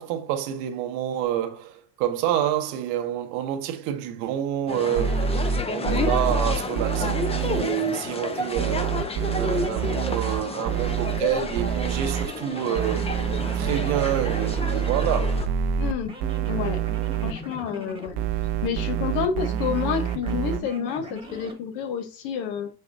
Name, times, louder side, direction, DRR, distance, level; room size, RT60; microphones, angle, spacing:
voice 1, 0.0-9.0 9.3-13.1 13.5-15.5, right 11 dB, 70° right, 1.0 m, -28 dB
sound 1, 4.7-15.5, left 3 dB, 15° left, 0.6 m, -31 dB
sound 2, 4.9-7.6 8.5-11.2 11.5-12.3 12.7-15.9 16.2-17.3 18.1-20.6, right 8 dB, 55° right, 0.7 m, -26 dB
sound 3, 10.7-21.6, right 1 dB, 10° right, 1.3 m, -40 dB
voice 2, 15.8-16.1 16.5-16.8 17.2-18.2 18.6-22.7, left 7 dB, 65° left, 1.2 m, -29 dB
4.7 x 4.4 x 2.6 m
hypercardioid pair, 85°, 49 cm